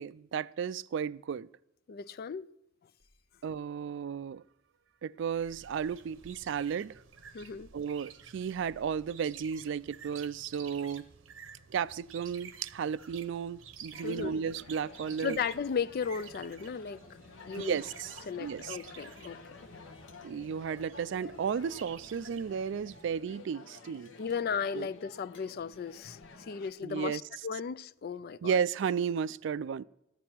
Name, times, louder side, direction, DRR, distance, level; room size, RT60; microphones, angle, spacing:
voice 1, 0.0-1.5 3.4-4.4 5.0-7.0 7.7-11.0 11.7-15.4 17.6-18.8 20.2-24.1 24.7-24.9 26.8-27.2 28.4-29.8, right 7 dB, 70° right, 0.3 m, -34 dB
voice 2, 1.9-2.5 7.3-7.7 14.0-14.4 15.2-17.0 17.5-17.8 18.3-19.4 24.2-26.2 26.5-28.6, left 6 dB, 50° left, 0.4 m, -35 dB
sound 1, 3.0-10.6, equal, 20° left, 2.5 m, -65 dB
sound 2, 5.3-23.4, right 7 dB, 90° right, 0.8 m, -52 dB
sound 3, 13.9-26.7, left 4 dB, 80° left, 1.1 m, -52 dB
14.5 x 10.5 x 4.5 m
head